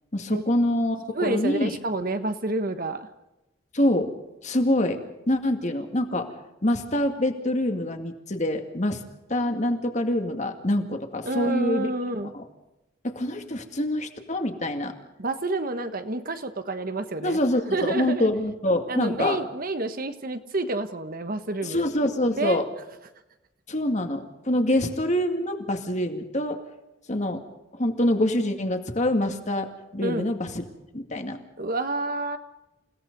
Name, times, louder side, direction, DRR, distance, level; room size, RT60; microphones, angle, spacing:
voice 1, 0.1-1.8 3.7-4.1 4.4-5.0 5.3-6.3 6.6-9.0 9.3-11.9 12.3-12.4 13.0-14.9 17.2-19.4 21.6-22.7 23.7-26.6 27.1-27.4 27.7-30.6 30.9-31.4, left 1 dB, 40° left, 5 dB, 2.2 m, -25 dB
voice 2, 1.1-3.1 11.2-12.3 15.2-17.4 17.7-18.3 18.9-21.8 22.4-22.6 30.0-30.3 31.6-32.4, right 2 dB, 50° right, 9 dB, 1.4 m, -29 dB
29.0 x 17.0 x 5.4 m, 0.96 s
head